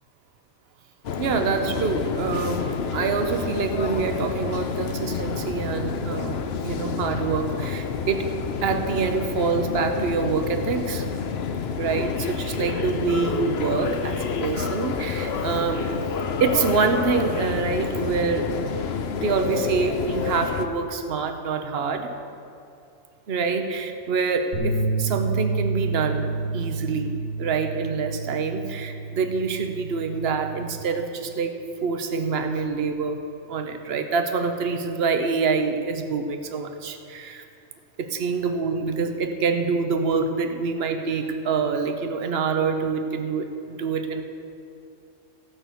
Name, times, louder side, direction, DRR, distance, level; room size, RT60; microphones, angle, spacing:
sound 1, 1.0-20.7, left 5 dB, 55° left, 0.9 m, -29 dB
voice 1, 1.2-8.3 8.6-11.0 11.8-15.9 16.4-18.5 19.1-22.1 23.3-31.5 31.8-33.2 33.5-37.4 38.0-44.2, right 5 dB, 55° right, 6 dB, 1.1 m, -26 dB
sound 2, 24.5-30.8, right 3 dB, 85° right, 2.5 m, -29 dB
14.5 x 6.1 x 8.1 m, 2.5 s
omnidirectional pair, 1.3 m